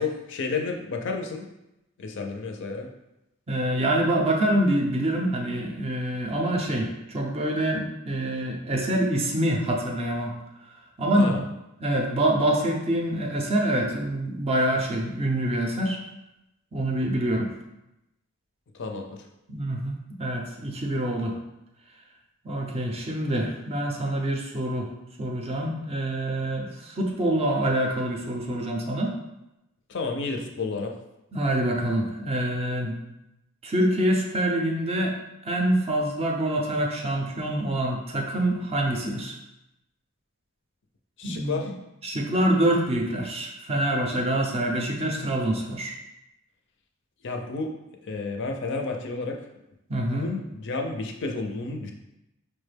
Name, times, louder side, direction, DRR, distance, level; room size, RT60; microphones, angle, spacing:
voice 1, 0.0-1.5 2.0-2.9 11.2-11.4 18.7-19.3 29.9-30.9 41.2-41.7 47.2-47.8 48.0-49.4 50.1-51.9, left 4 dB, 55° left, 3 dB, 0.4 m, -31 dB
voice 2, 3.5-10.3 11.0-11.4 11.8-16.0 16.7-17.5 19.5-21.3 22.4-24.9 25.2-29.1 31.3-33.0 33.6-35.2 35.4-39.4 41.2-41.7 42.0-45.9 49.9-50.3, right 1 dB, 30° right, 0 dB, 0.5 m, -26 dB
4.7 x 2.2 x 3.3 m, 0.89 s
head